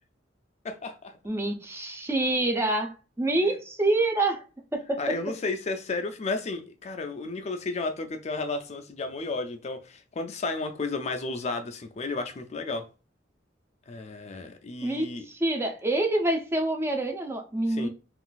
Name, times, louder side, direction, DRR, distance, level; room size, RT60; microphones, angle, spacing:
voice 1, 0.6-1.2 5.0-12.9 13.9-15.3 17.7-17.9, left 3 dB, 35° left, 0.4 m, -33 dB
voice 2, 1.2-4.4 4.7-5.2 14.8-17.9, right 2 dB, 15° right, 0.5 m, -27 dB
3.8 x 2.5 x 2.3 m
head